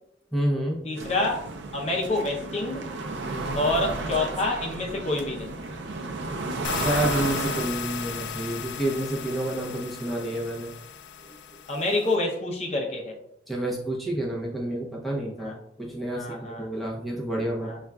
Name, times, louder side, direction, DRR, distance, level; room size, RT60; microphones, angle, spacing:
voice 1, 0.3-0.9 3.2-3.6 6.7-10.7 11.2-11.6 13.5-17.7, right 1 dB, ahead, -4 dB, 0.7 m, -29 dB
voice 2, 0.8-1.4 1.7-2.9 3.6-5.5 11.7-13.2 15.4-15.6 16.1-16.7 17.6-17.8, left 2 dB, 35° left, 0 dB, 0.6 m, -27 dB
sound 1, 1.0-7.7, right 2 dB, 80° right, 0.5 m, -33 dB
sound 2, 6.6-12.2, left 7 dB, 75° left, 0.3 m, -35 dB
5.3 x 2.4 x 2.3 m, 0.74 s
head